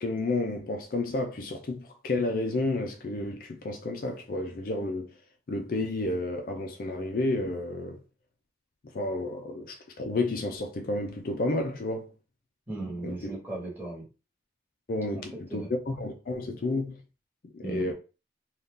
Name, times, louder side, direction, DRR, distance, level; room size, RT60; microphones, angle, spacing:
voice 1, 0.0-5.1 5.5-8.0 8.9-12.1 13.0-13.3 14.9-17.0 17.5-17.9, left 2 dB, 50° left, 0.4 m, -31 dB
voice 2, 12.7-14.0 15.1-15.2 15.5-15.7 17.6-17.9, right 2 dB, 10° right, 1.1 m, -37 dB
2.7 x 2.3 x 3.5 m
head